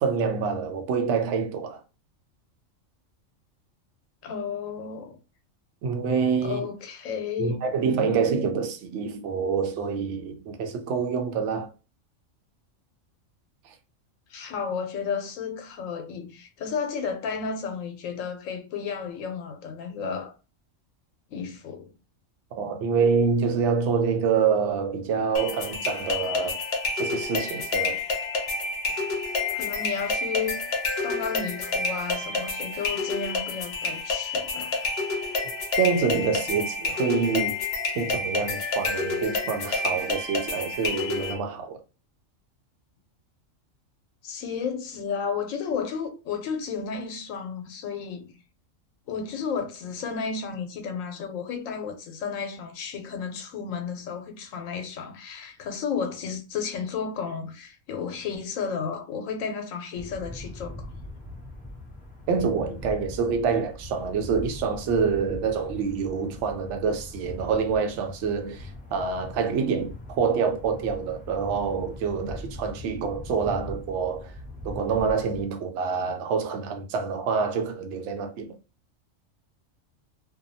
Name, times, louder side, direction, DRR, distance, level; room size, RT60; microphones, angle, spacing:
voice 1, 0.0-1.8 5.8-6.6 7.4-11.7 22.6-26.6 27.0-28.0 35.8-37.6 38.0-41.7 62.3-74.3 74.6-78.5, right 5 dB, 70° right, 0.8 m, -26 dB
voice 2, 4.2-5.2 6.4-7.6 14.3-20.3 21.3-21.9 29.5-30.6 31.0-34.9 44.2-48.3 49.1-60.9, left 6 dB, 80° left, 1.0 m, -32 dB
sound 1, 25.4-41.4, left 3 dB, 60° left, 0.8 m, -29 dB
sound 2, 59.9-75.5, left 1 dB, 10° left, 0.6 m, -41 dB
2.7 x 2.2 x 2.6 m
omnidirectional pair, 1.4 m